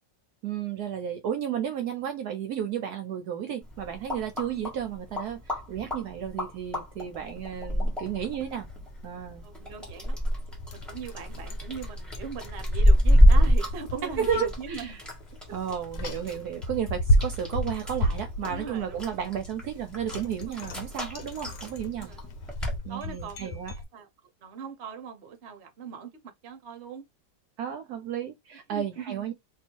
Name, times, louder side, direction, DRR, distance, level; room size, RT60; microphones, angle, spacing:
voice 1, 0.4-8.7 9.0-9.4 14.2-14.9 15.5-22.1 22.8-23.7 27.6-29.3, right 9 dB, 70° right, 1.0 m, -33 dB
sound 1, 3.6-22.8, equal, ahead, 1.3 m, -28 dB
Bicycle, 7.5-23.8, equal, 70° left, 1.3 m, -34 dB
voice 2, 9.4-10.2 10.7-15.0 15.5-15.7 18.5-19.1 20.4-20.5 21.4-21.6 22.0-22.2 22.9-23.6 23.9-24.1 24.4-27.0 28.7-29.3, right 6 dB, 50° right, 0.9 m, -40 dB
2.8 x 2.7 x 4.4 m
omnidirectional pair, 1.9 m